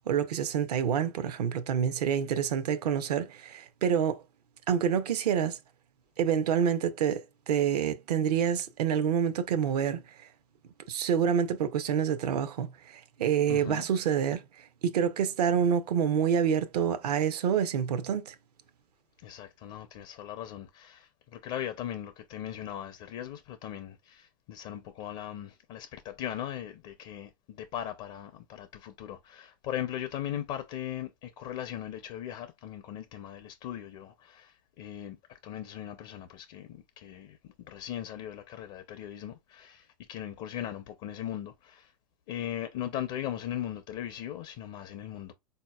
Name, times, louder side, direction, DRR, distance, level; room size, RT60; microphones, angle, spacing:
voice 1, 0.1-4.2 4.7-5.6 6.2-10.3 10.9-14.4 14.8-18.3, right 8 dB, 70° right, 0.6 m, -27 dB
voice 2, 13.5-13.9 19.2-41.9 42.3-45.3, left 11 dB, 45° left, 0.5 m, -39 dB
3.9 x 2.8 x 2.3 m
hypercardioid pair, 115°, 21 cm